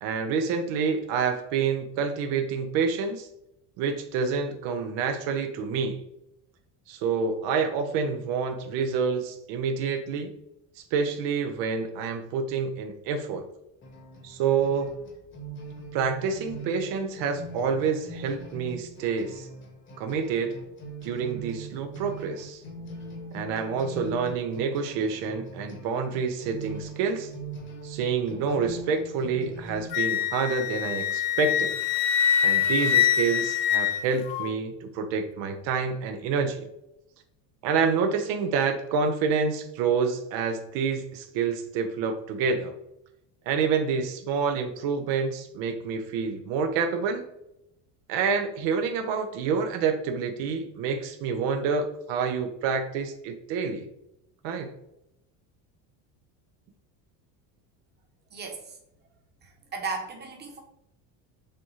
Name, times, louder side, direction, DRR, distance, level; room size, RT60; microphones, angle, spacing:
voice 1, 0.0-3.3 3.8-6.0 6.9-10.3 10.8-13.4 14.2-14.9 15.9-19.5 20.0-20.6 21.0-22.6 23.3-27.3 27.8-31.8 32.4-36.7 37.6-42.7 43.5-47.2 48.1-53.8 54.4-54.7, right 5 dB, 75° right, 6 dB, 0.7 m, -28 dB
sound 1, 13.8-29.9, right 2 dB, 25° left, 1.0 m, -42 dB
Wind instrument woodwind instrument, 29.9-34.5, left 9 dB, 60° left, 0.5 m, -24 dB
voice 2, 58.3-58.8 59.4-60.6, right 4 dB, 25° right, 1 dB, 1.0 m, -36 dB
6.7 x 2.4 x 3.0 m, 0.82 s
cardioid pair, 130°, 44 cm